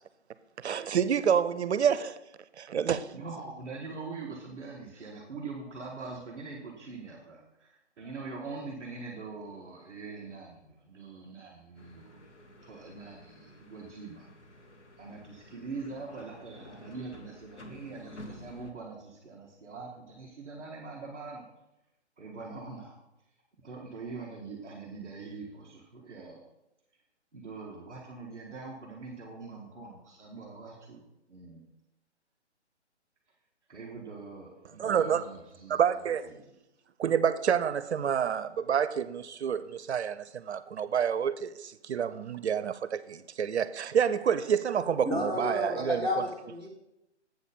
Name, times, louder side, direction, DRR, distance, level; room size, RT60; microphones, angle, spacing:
voice 1, 0.6-2.2 2.6-3.1 34.8-35.2 35.7-36.3 37.0-46.1, right 8 dB, 70° right, 0.5 m, -28 dB
voice 2, 3.1-12.2 12.6-14.3 15.0-21.5 22.2-23.0 23.6-26.4 27.3-31.0 31.3-31.6 33.7-35.8 36.3-36.5, right 4 dB, 5° right, 0.5 m, -43 dB
sound 1, 11.8-18.7, left 1 dB, 80° left, 1.3 m, -51 dB
voice 3, 45.0-46.7, left 1 dB, 15° left, 1.8 m, -31 dB
8.0 x 4.2 x 6.8 m
hypercardioid pair, 145°, 35 cm